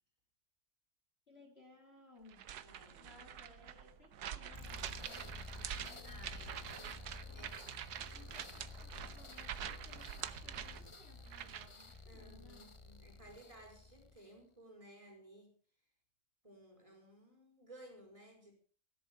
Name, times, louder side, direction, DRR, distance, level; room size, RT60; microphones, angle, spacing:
voice 1, 1.3-7.6 8.1-12.7, left 3 dB, 40° left, 2 dB, 2.8 m, -62 dB
sound 1, 2.3-11.8, right 9 dB, 85° right, 1.5 m, -46 dB
voice 2, 2.6-3.2 6.0-6.6 7.3-7.5 12.1-15.5 16.4-18.6, right 1 dB, 20° right, 2 dB, 5.0 m, -57 dB
sound 2, 4.4-14.4, left 3 dB, 25° left, 0.8 m, -52 dB
17.0 x 11.5 x 5.3 m, 0.42 s
omnidirectional pair, 1.7 m